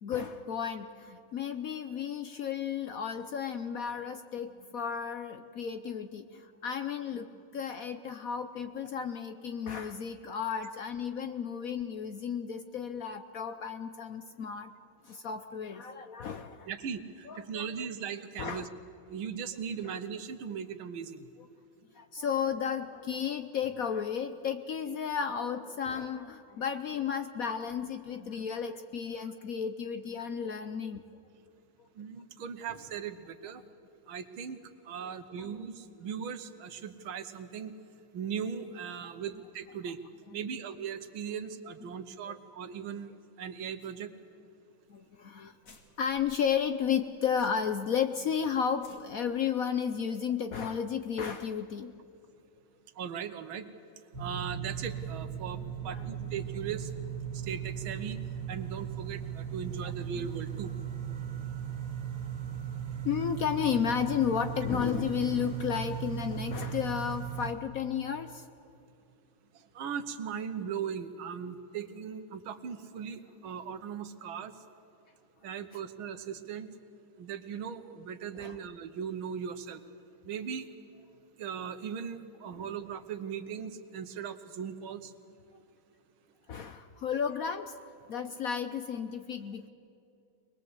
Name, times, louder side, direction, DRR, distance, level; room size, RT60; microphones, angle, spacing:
voice 1, 0.0-14.7 15.0-16.7 17.3-17.7 18.4-18.7 21.9-31.0 35.4-35.5 41.9-42.0 44.9-51.9 55.9-56.3 59.8-60.3 61.2-61.4 63.0-68.5 78.3-78.6 82.5-82.6 86.5-87.8 88.1-89.7, left 7 dB, 60° left, 9 dB, 0.9 m, -33 dB
voice 2, 16.7-18.7 19.1-21.3 32.0-33.6 34.1-34.6 34.9-37.7 38.1-40.0 40.3-43.1 43.4-44.1 53.0-53.7 54.2-56.9 57.3-58.2 58.5-60.7 69.8-74.5 75.4-76.7 77.2-79.8 80.3-80.7 81.4-85.1, right 7 dB, 85° right, 10 dB, 1.9 m, -38 dB
sound 1, 44.9-45.0 45.3-45.4 45.6-47.9 48.2-48.3 48.7-49.0, left 1 dB, 40° left, 2.5 m, -58 dB
sound 2, 54.1-67.5, right 8 dB, 40° right, 2.6 m, -37 dB
22.5 x 21.0 x 8.0 m, 2.6 s
omnidirectional pair, 2.2 m